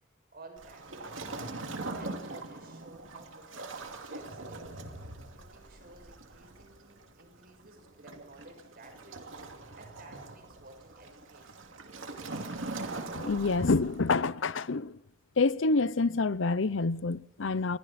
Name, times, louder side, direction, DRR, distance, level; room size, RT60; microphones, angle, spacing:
voice 1, 0.3-1.1 1.7-4.8 5.4-9.4 9.7-11.8, right 2 dB, 50° right, 6.5 m, -54 dB
Waves surf, 0.6-14.2, right 2 dB, 70° right, 2.6 m, -42 dB
voice 2, 13.2-15.0 15.4-17.8, left 3 dB, 65° left, 0.7 m, -27 dB
28.5 x 21.0 x 4.3 m
head